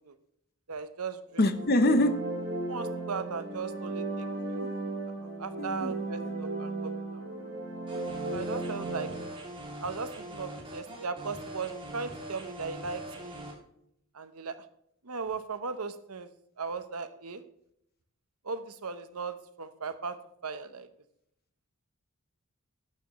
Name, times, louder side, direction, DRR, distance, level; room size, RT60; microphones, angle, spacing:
voice 1, 0.7-1.5 2.7-4.6 5.4-7.2 8.3-9.4 9.8-13.6 14.1-14.5 15.0-16.3 16.6-17.4 18.4-20.9, right 4 dB, 85° right, 11 dB, 1.0 m, -38 dB
sound 1, 1.3-9.2, right 2 dB, 65° right, 3.9 m, -36 dB
voice 2, 1.4-2.1 4.5-4.7 5.6-5.9 6.2-6.3, left 1 dB, 45° left, 11 dB, 0.9 m, -25 dB
sound 2, 7.9-13.5, right 1 dB, 25° right, 2.9 m, -42 dB
12.5 x 9.4 x 3.2 m, 0.73 s
head